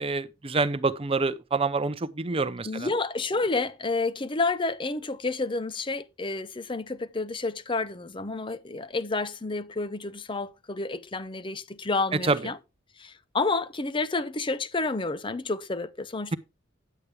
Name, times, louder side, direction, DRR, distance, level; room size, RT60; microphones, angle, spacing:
voice 1, 0.0-2.9 12.2-12.4, right 3 dB, 30° right, 0.7 m, -27 dB
voice 2, 2.6-12.6 13.0-16.4, left 3 dB, 25° left, 0.6 m, -30 dB
10.5 x 8.3 x 3.3 m
head